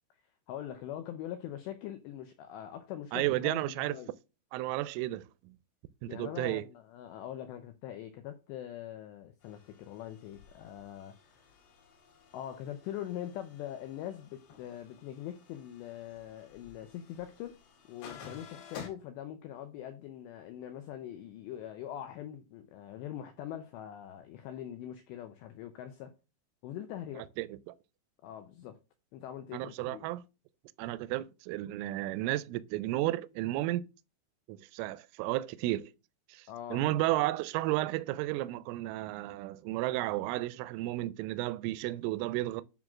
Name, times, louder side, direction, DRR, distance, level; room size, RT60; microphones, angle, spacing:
voice 1, 0.5-4.1 6.1-11.6 12.3-17.6 17.9-26.1 26.6-27.3 28.2-28.8 29.1-30.1 36.5-36.8, left 11 dB, 85° left, 2.5 m, -43 dB
voice 2, 3.1-4.0 4.5-5.6 6.0-6.7 27.4-27.7 29.5-30.2 30.8-33.9 34.5-35.9 36.3-42.6, right 16 dB, 85° right, 3.0 m, -33 dB
sound 1, 9.4-18.9, left 6 dB, 60° left, 3.8 m, -53 dB
9.0 x 3.7 x 6.1 m
omnidirectional pair, 5.8 m